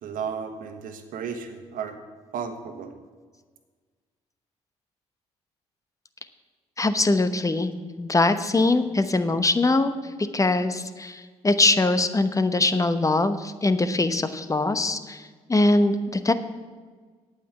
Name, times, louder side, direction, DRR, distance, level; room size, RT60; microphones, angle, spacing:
voice 1, 0.0-2.0 2.3-2.9, right 6 dB, 70° right, 6 dB, 1.4 m, -34 dB
voice 2, 6.8-7.7 8.0-9.9 10.3-16.3, left 2 dB, 20° left, 11 dB, 1.0 m, -22 dB
8.9 x 8.3 x 8.2 m, 1.5 s
hypercardioid pair, 50°, 15 cm